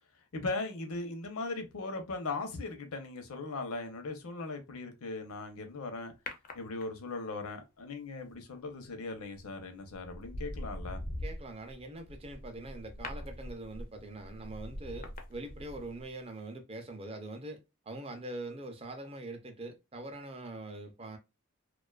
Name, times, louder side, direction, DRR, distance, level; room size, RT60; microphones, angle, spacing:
voice 1, 0.3-6.1 6.5-11.0, left 3 dB, 75° left, 0.7 m, -39 dB
sound 1, 6.3-7.3 9.2-9.4 9.9-16.1 16.4-16.5, left 1 dB, 40° left, 0.4 m, -43 dB
voice 2, 11.2-17.6 17.9-21.2, right 2 dB, 25° right, 0.5 m, -43 dB
2.5 x 2.3 x 2.3 m
head